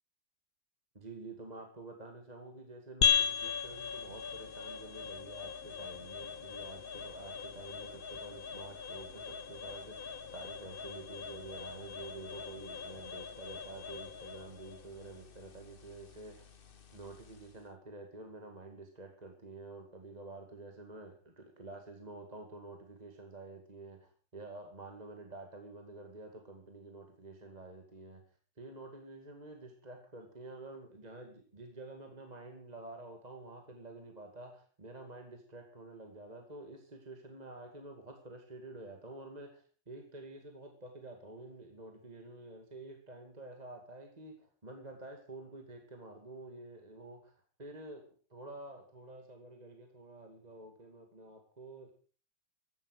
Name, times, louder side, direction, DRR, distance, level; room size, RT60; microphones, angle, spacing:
voice 1, 0.9-16.5 16.9-28.2 28.6-48.0 48.3-51.9, right 2 dB, 20° right, 3 dB, 2.4 m, -49 dB
sound 1, 3.0-17.6, left 7 dB, 35° left, 1.0 m, -38 dB
16.0 x 11.0 x 6.6 m, 0.41 s
omnidirectional pair, 1.9 m